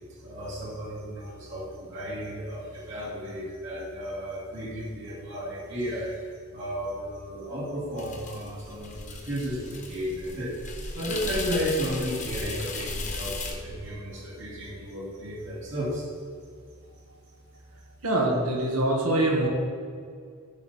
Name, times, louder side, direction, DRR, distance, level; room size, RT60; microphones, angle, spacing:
voice 1, 0.2-10.5 10.9-16.1, equal, 55° right, -6 dB, 2.5 m, -33 dB
sound 1, 8.0-13.5, left 3 dB, 35° left, 1.1 m, -36 dB
voice 2, 18.0-19.5, right 1 dB, 80° right, -1 dB, 2.0 m, -24 dB
14.0 x 5.6 x 4.4 m, 2.1 s
head